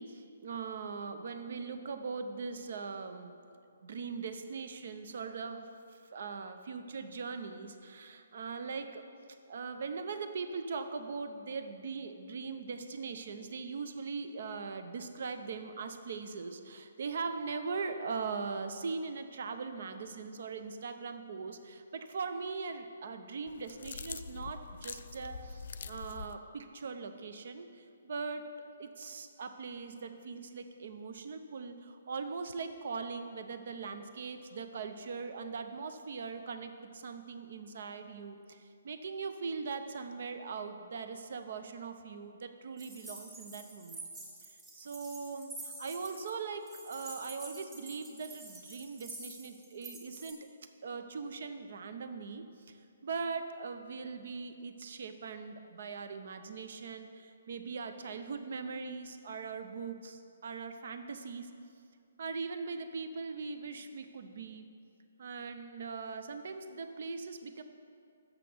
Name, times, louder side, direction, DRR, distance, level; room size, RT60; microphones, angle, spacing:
voice 1, 0.0-3.3 3.8-9.1 9.5-44.1 44.5-50.4 50.8-61.5 62.2-64.6 65.2-67.6, right 4 dB, 60° right, 8 dB, 0.6 m, -40 dB
sound 1, 23.5-26.4, left 5 dB, 60° left, 0.3 m, -44 dB
sound 2, 42.8-46.3 46.7-50.3, right 2 dB, 30° right, 1.7 m, -48 dB
6.9 x 5.8 x 6.8 m, 2.4 s
figure-of-eight pair, 135°, 0 cm